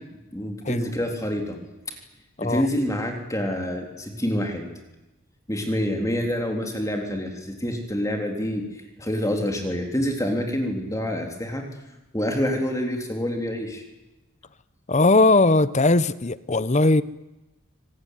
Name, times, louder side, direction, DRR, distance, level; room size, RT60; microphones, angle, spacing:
voice 1, 0.3-1.6 2.4-4.7 5.5-8.6 9.0-11.6 12.1-13.8, equal, 15° left, 3.6 m, -27 dB
voice 2, 14.9-17.0, left 2 dB, 30° left, 0.8 m, -19 dB
25.5 x 20.0 x 9.6 m
head